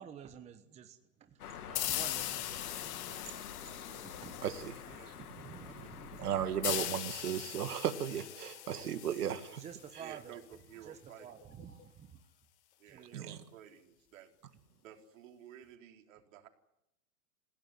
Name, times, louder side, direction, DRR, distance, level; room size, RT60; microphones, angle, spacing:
voice 1, 0.0-1.4 1.7-4.4 5.3-6.9 9.5-10.4 10.8-12.2 12.9-13.2, right 8 dB, 15° right, 7 dB, 1.2 m, -51 dB
sound 1, 1.4-6.9, left 8 dB, 70° left, 2.5 m, -47 dB
sound 2, 1.8-5.1 6.6-10.1, left 13 dB, 45° left, 2.3 m, -40 dB
sound 3, 2.2-2.8 3.8-4.6 6.6-7.3 8.3-9.1 11.1-11.8, left 5 dB, 20° left, 3.8 m, -60 dB
voice 2, 4.4-4.7 6.2-9.6 13.1-13.4, right 9 dB, 70° right, 9 dB, 2.2 m, -35 dB
voice 3, 5.6-6.4 10.0-11.5 12.8-14.3 14.8-16.5, right 9 dB, 55° right, 5 dB, 3.9 m, -54 dB
27.0 x 17.0 x 9.9 m, 0.87 s
hypercardioid pair, 140°, 47 cm